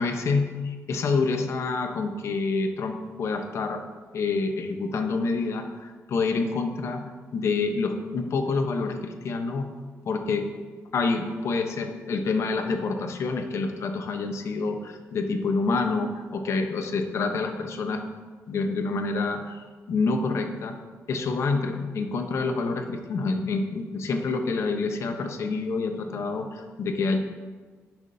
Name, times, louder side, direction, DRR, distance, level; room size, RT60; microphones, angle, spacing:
voice 1, 0.0-3.8 4.1-9.7 10.1-10.5 10.9-18.0 18.5-20.8 21.1-27.2, left 4 dB, 60° left, 5 dB, 0.9 m, -27 dB
17.5 x 5.9 x 2.7 m, 1.4 s
wide cardioid pair, 155°, 5 cm